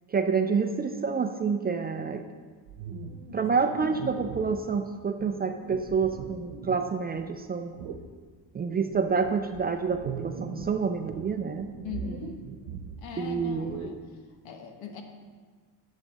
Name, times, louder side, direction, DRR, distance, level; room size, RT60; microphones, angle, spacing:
voice 1, 0.1-2.2 3.3-7.8 8.5-11.7 13.2-14.0, right 5 dB, 25° right, 6 dB, 0.3 m, -28 dB
sound 1, 2.7-4.6 5.2-7.3 7.8-8.1 8.6-10.8 11.1-14.0, right 6 dB, 85° right, 0.9 m, -40 dB
voice 2, 11.8-12.5 13.0-14.0 14.4-15.0, left 6 dB, 90° left, 5 dB, 1.4 m, -40 dB
11.0 x 7.4 x 4.0 m, 1.5 s
cardioid pair, 145°, 45 cm